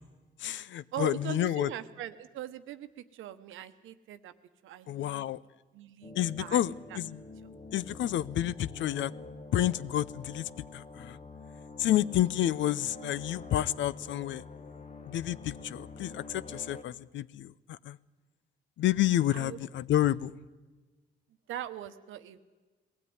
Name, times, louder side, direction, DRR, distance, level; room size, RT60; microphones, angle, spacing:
voice 1, 0.4-1.7 4.9-5.4 6.1-7.2 7.7-9.1 9.5-11.2 11.8-14.4 15.1-18.0 18.8-20.3, left 12 dB, 70° left, 19 dB, 0.6 m, -30 dB
voice 2, 0.9-4.3 4.6-5.2 5.7-6.6 6.9-7.0 19.3-19.6 21.5-22.4, right 12 dB, 85° right, 11 dB, 1.1 m, -41 dB
sound 1, 6.0-16.8, left 3 dB, 35° left, 1.4 m, -46 dB
20.5 x 16.0 x 9.6 m, 1.3 s
cardioid pair, 90°, 20 cm